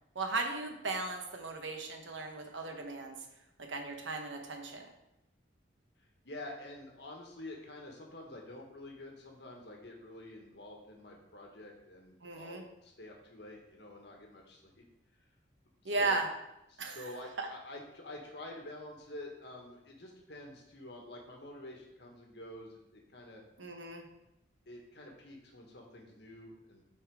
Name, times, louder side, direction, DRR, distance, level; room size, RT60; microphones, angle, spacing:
voice 1, 0.1-3.2 3.6-4.9 12.2-12.6 15.8-16.3 16.8-17.0 17.4-17.5 23.6-24.0, right 3 dB, 80° right, 3 dB, 1.1 m, -36 dB
voice 2, 6.2-14.8 15.8-16.2 16.7-23.4 24.6-26.8, left 1 dB, 60° left, 0 dB, 1.6 m, -48 dB
8.2 x 4.3 x 4.8 m, 0.87 s
head